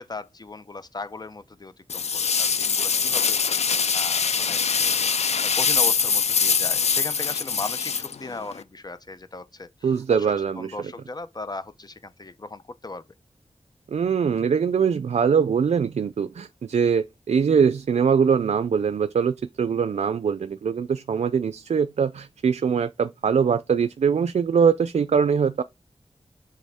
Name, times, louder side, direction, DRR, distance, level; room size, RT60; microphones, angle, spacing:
voice 1, 0.0-3.4 3.9-5.1 5.4-13.1, left 3 dB, 35° left, 0.7 m, -37 dB
sound 1, 1.9-8.6, left 6 dB, 70° left, 0.5 m, -23 dB
voice 2, 9.8-10.7 13.9-25.6, right 6 dB, 85° right, 0.4 m, -22 dB
7.6 x 3.5 x 3.5 m
wide cardioid pair, 80°, 11 cm